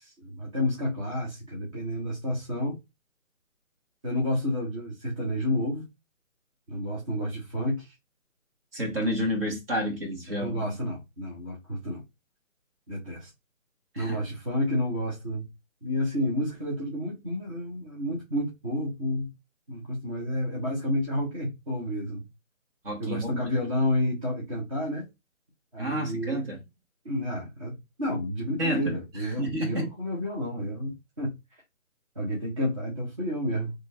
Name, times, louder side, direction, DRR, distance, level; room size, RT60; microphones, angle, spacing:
voice 1, 0.0-2.8 4.0-5.9 6.7-7.9 10.3-12.0 12.9-13.3 14.0-15.5 15.8-19.3 19.7-22.2 23.0-25.0 25.7-26.4 27.0-31.3 32.1-33.7, left 1 dB, 25° right, 1.1 m, -30 dB
voice 2, 8.7-10.8 13.9-14.2 22.8-23.5 25.8-26.6 28.6-29.9, equal, 40° right, 2.1 m, -30 dB
4.2 x 3.2 x 2.8 m
hypercardioid pair, 165°, 41 cm